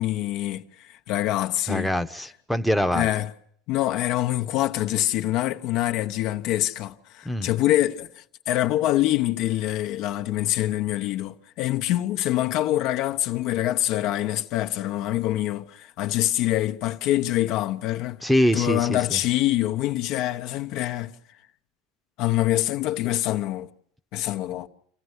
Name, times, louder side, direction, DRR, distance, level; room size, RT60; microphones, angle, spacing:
voice 1, 0.0-1.9 2.9-3.3 3.7-8.1 8.5-18.2 18.5-21.1 22.2-23.7 24.1-24.7, left 14 dB, 60° left, 0.9 m, -25 dB
voice 2, 1.7-3.1 7.2-7.5 18.2-19.2, equal, ahead, 0.9 m, -24 dB
26.0 x 14.5 x 8.1 m
hypercardioid pair, 90°, 0 cm